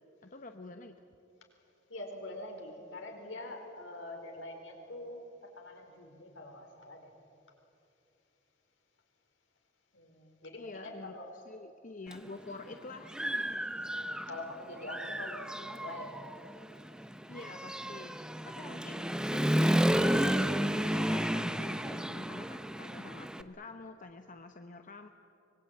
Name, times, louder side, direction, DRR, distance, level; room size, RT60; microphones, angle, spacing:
voice 1, 0.2-1.0 10.6-13.2 17.3-18.2 18.4-25.1, left 3 dB, 45° left, 6 dB, 0.9 m, -47 dB
voice 2, 1.9-7.1 9.9-11.3 13.9-15.5 15.8-16.2, left 1 dB, 75° left, 2 dB, 4.4 m, -44 dB
Human voice / Motorcycle, 12.1-12.2 12.7-14.5 14.8-23.4, equal, 5° right, 0.7 m, -32 dB
24.5 x 22.0 x 8.9 m, 2.8 s
head